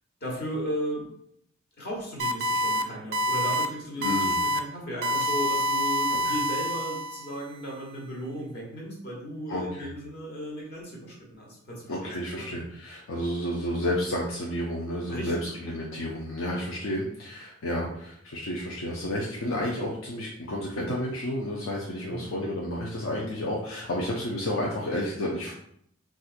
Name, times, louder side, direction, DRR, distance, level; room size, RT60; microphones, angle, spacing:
voice 1, 0.2-1.1 1.8-12.6 15.1-15.5 22.1-22.5, equal, 55° left, -3 dB, 1.2 m, -36 dB
sound 1, 2.2-2.8 3.1-3.7 4.0-4.6 5.0-7.3, equal, 55° right, 0.4 m, -26 dB
voice 2, 4.0-4.4 6.1-6.3 9.5-9.9 11.9-25.5, left 1 dB, 80° left, -3 dB, 0.6 m, -31 dB
4.2 x 2.4 x 2.4 m, 0.70 s
head